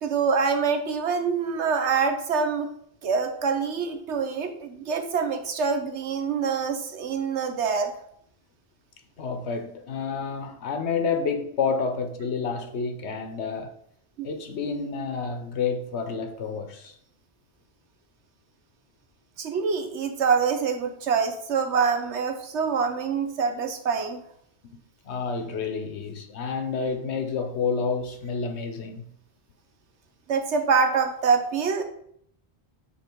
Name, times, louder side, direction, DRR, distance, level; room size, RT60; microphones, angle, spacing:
voice 1, 0.0-2.7 3.0-7.9 14.2-14.3 14.7-14.9 19.4-24.2 30.3-31.8, right 5 dB, 85° right, 1.2 m, -25 dB
voice 2, 9.2-13.7 14.2-16.9 24.6-24.8 25.0-29.1, left 5 dB, 75° left, 1.1 m, -29 dB
5.5 x 4.4 x 4.5 m
omnidirectional pair, 1.1 m